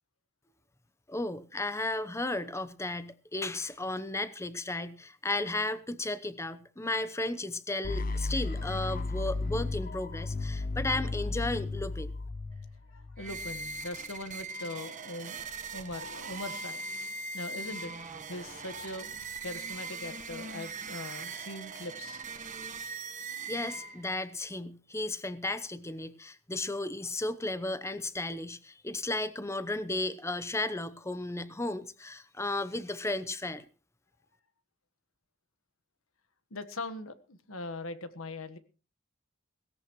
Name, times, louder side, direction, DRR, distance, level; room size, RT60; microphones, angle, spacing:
voice 1, 1.1-12.1 23.5-33.7, left 2 dB, 15° left, 14 dB, 0.8 m, -34 dB
sound 1, 7.8-13.8, left 3 dB, 45° left, 0.7 m, -34 dB
voice 2, 12.9-15.4 15.7-16.8 17.3-22.2 36.5-38.6, left 2 dB, 80° left, 11 dB, 1.4 m, -41 dB
sound 2, 13.2-24.2, right 3 dB, 40° right, 1.4 m, -40 dB
17.5 x 17.0 x 3.1 m, 0.36 s
head